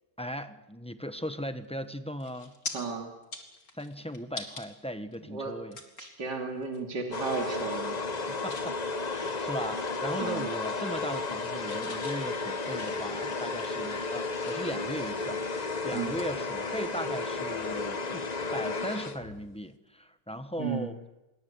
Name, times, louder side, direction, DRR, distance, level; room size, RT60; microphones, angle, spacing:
voice 1, 0.2-2.6 3.7-5.8 8.3-8.8 9.1-21.0, equal, 5° left, 9 dB, 0.8 m, -38 dB
sound 1, 1.6-1.9 2.2-2.7 3.2-4.7 5.1-5.2 5.7-6.2 6.6-6.8 7.1-7.6 7.9-8.7 9.1-10.4 10.7-11.4 11.7-14.8 15.3-17.1 17.4-17.6 19.5-19.6, left 3 dB, 55° left, 3.4 m, -45 dB
voice 2, 2.7-3.1 5.3-5.5 6.0-8.0 10.2-10.5 15.9-16.2 20.6-21.0, right 4 dB, 70° right, 1 dB, 3.5 m, -34 dB
sound 2, 7.1-19.5, left 3 dB, 30° left, 1.0 m, -33 dB
27.0 x 22.5 x 8.1 m, 1.0 s
omnidirectional pair, 1.9 m